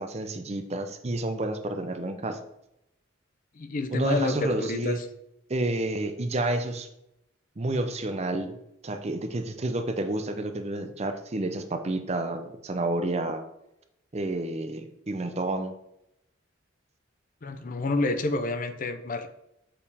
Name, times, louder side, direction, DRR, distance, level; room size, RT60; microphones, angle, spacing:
voice 1, 0.0-2.4 3.9-5.0 5.5-6.9 7.6-8.6 8.8-13.4 14.1-15.7, right 2 dB, 35° right, 7 dB, 0.6 m, -30 dB
voice 2, 3.6-5.1 17.4-19.3, left 2 dB, 45° left, 9 dB, 0.5 m, -29 dB
7.0 x 5.1 x 3.5 m, 0.81 s
head